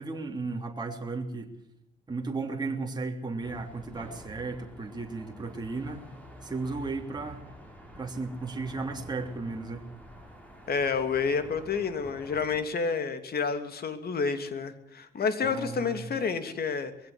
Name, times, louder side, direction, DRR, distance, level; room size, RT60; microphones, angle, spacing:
voice 1, 0.0-1.5 2.1-6.0 6.4-7.4 7.9-9.9 15.4-16.1, right 3 dB, 20° right, 2 dB, 3.2 m, -35 dB
sound 1, 3.4-12.6, equal, 5° left, 6.6 m, -48 dB
voice 2, 10.7-16.9, left 5 dB, 50° left, 9 dB, 3.0 m, -29 dB
22.0 x 16.0 x 8.1 m, 0.74 s
cardioid pair, 90°, 20 cm